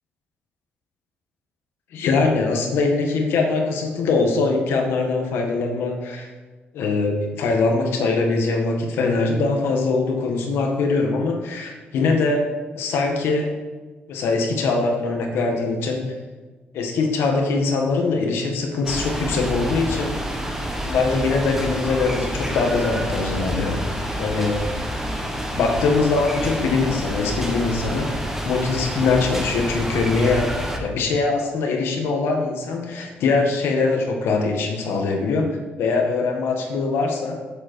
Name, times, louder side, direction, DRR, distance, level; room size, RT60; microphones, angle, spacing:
voice 1, 1.9-6.3 6.7-12.4 12.7-13.6 14.1-16.1 16.7-20.2 20.9-23.8 24.2-24.6 25.5-28.2 28.4-30.5 30.8-37.4, left 3 dB, 90° left, 2 dB, 1.8 m, -22 dB
sound 1, 18.8-30.8, equal, 10° right, 1.5 m, -28 dB
7.9 x 7.7 x 4.6 m, 1.3 s
cardioid pair, 120°, 4 cm